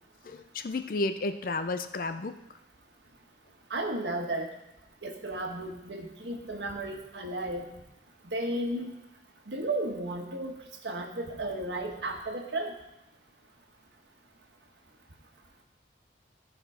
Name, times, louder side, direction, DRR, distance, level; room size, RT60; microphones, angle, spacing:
voice 1, 0.2-2.4, left 2 dB, 50° left, 9 dB, 0.4 m, -32 dB
voice 2, 3.7-4.5 5.0-7.6 8.2-8.9 9.5-10.5 10.8-12.7, right 1 dB, 80° right, 2 dB, 1.4 m, -33 dB
14.0 x 4.9 x 5.0 m, 0.90 s
head